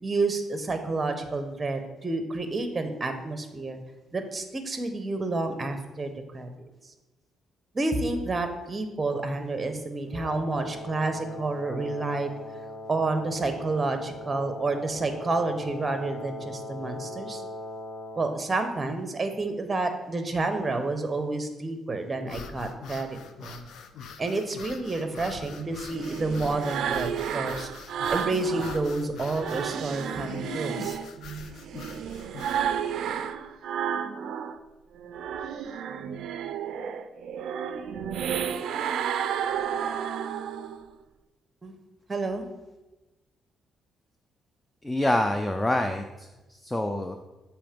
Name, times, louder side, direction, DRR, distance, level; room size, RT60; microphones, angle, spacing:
voice 1, 0.0-3.8 4.1-6.5 7.7-12.3 12.9-17.4 18.2-23.1 23.4-23.6 24.2-27.7 28.1-31.0 41.6-41.7 42.1-42.4, right 3 dB, 25° right, 7 dB, 0.8 m, -29 dB
Wind instrument woodwind instrument, 10.1-18.4, left 1 dB, 40° left, 1.8 m, -40 dB
sound 1, 22.2-32.7, left 6 dB, 75° left, 0.5 m, -43 dB
sound 2, 25.4-28.8 29.2-34.6 35.0-40.8, right 8 dB, 75° right, 0.3 m, -32 dB
voice 2, 44.8-47.2, left 1 dB, 15° left, 6 dB, 0.4 m, -27 dB
6.9 x 3.0 x 5.1 m, 1.1 s
cardioid pair, 90°, 0 cm